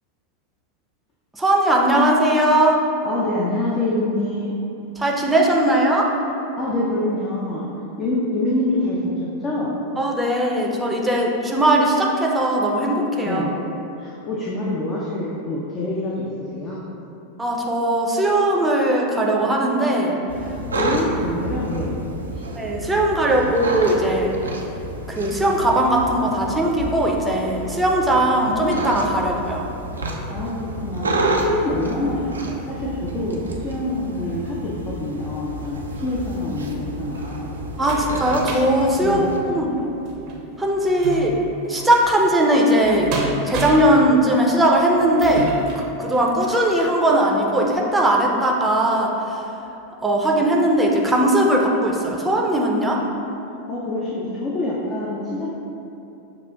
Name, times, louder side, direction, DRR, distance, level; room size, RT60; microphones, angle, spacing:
voice 1, 1.3-2.8 5.0-6.1 10.0-13.5 17.4-20.2 22.6-24.3 25.1-29.6 37.8-39.7 40.6-41.4 41.7-43.1 43.4-45.5 46.0-49.4 50.0-53.0, right 1 dB, 10° right, -2 dB, 0.6 m, -19 dB
voice 2, 3.0-4.6 6.6-7.6 8.0-9.7 13.2-13.5 14.0-16.8 20.7-21.9 22.3-22.5 30.3-37.5 39.0-39.3 53.7-55.5, left 2 dB, 30° left, -6 dB, 0.6 m, -26 dB
sound 1, 20.3-39.4, right 1 dB, 85° right, 0.4 m, -30 dB
sound 2, 36.9-46.7 47.3-47.4 47.7-47.8, right 2 dB, 50° right, 0.6 m, -32 dB
6.6 x 2.4 x 2.3 m, 2.8 s
figure-of-eight pair, 90°, 0 cm